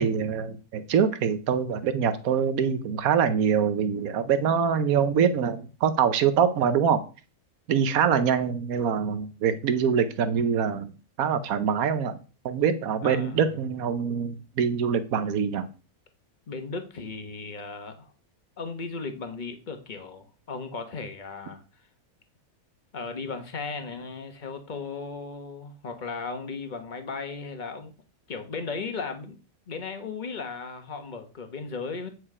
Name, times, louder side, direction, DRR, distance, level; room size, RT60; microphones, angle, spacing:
voice 1, 0.0-7.0 7.7-10.9 11.2-12.2 12.4-15.7, right 7 dB, 85° right, 10 dB, 1.3 m, -24 dB
voice 2, 13.0-13.5 16.5-18.1 18.6-21.6 22.9-27.9 28.3-29.4 29.7-32.1, left 4 dB, 35° left, 7 dB, 1.3 m, -36 dB
9.0 x 4.8 x 4.9 m, 0.35 s
omnidirectional pair, 1.5 m